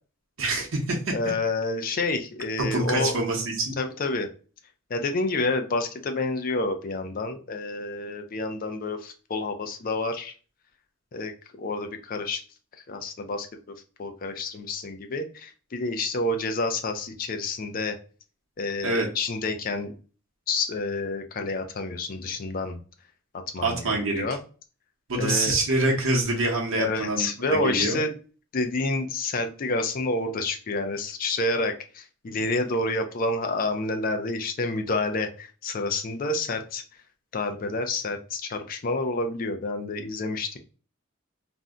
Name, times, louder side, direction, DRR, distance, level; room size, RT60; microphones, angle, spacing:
voice 1, 0.4-1.1 2.6-3.8 18.8-19.1 23.6-24.2 25.1-28.0, right 2 dB, 70° right, 0 dB, 0.8 m, -25 dB
voice 2, 1.1-3.1 3.8-4.3 4.9-10.3 11.1-11.3 11.6-12.4 12.9-18.0 18.6-19.9 20.5-22.8 23.5-24.4 25.1-25.5 26.8-28.1 28.5-36.8 37.3-40.6, left 2 dB, 45° left, 6 dB, 0.4 m, -29 dB
2.6 x 2.1 x 3.6 m, 0.38 s
head